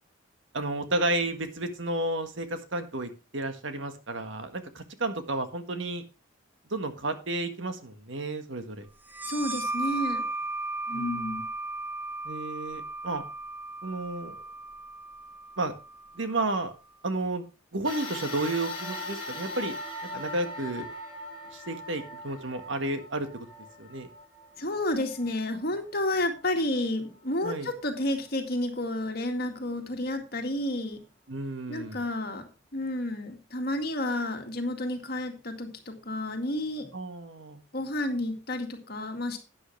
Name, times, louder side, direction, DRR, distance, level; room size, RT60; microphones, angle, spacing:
voice 1, 0.5-6.0 6.7-8.9 10.9-11.4 12.2-13.2 13.8-14.4 15.6-15.7 16.1-16.7 17.0-17.5 17.7-19.7 20.1-20.9 21.5-23.5 23.8-24.1 27.4-27.7 31.3-32.0 36.9-37.6, right 2 dB, 70° right, 8 dB, 1.6 m, -32 dB
sound 1, 9.1-16.4, right 2 dB, 10° right, 0.6 m, -36 dB
voice 2, 9.2-10.2 10.9-11.4 24.6-31.0 31.7-32.5 32.7-36.9 37.7-39.4, left 1 dB, 50° left, 4 dB, 2.0 m, -31 dB
sound 2, 17.8-26.5 27.1-27.2 28.3-28.4, left 1 dB, 25° left, 4.9 m, -40 dB
11.5 x 9.6 x 3.3 m, 0.29 s
head